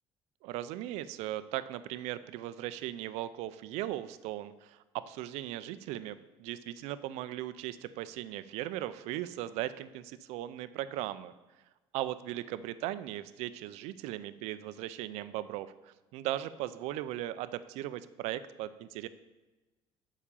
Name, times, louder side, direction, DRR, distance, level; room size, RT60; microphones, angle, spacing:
voice 1, 0.4-11.3 11.9-19.1, right 14 dB, 90° right, 14 dB, 0.4 m, -38 dB
7.3 x 4.9 x 6.9 m, 1.1 s
cardioid pair, 115°, 11 cm